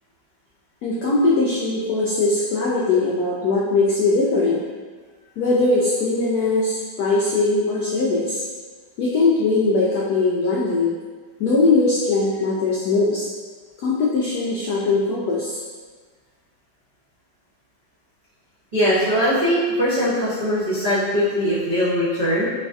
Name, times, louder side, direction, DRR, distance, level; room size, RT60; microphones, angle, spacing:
voice 1, 0.8-4.6 5.4-8.4 9.0-10.9 11.4-13.3 13.8-15.6, left 3 dB, 75° left, -5 dB, 0.9 m, -20 dB
voice 2, 18.7-22.5, equal, 85° right, -12 dB, 0.3 m, -21 dB
3.9 x 2.5 x 2.4 m, 1.5 s
omnidirectional pair, 2.0 m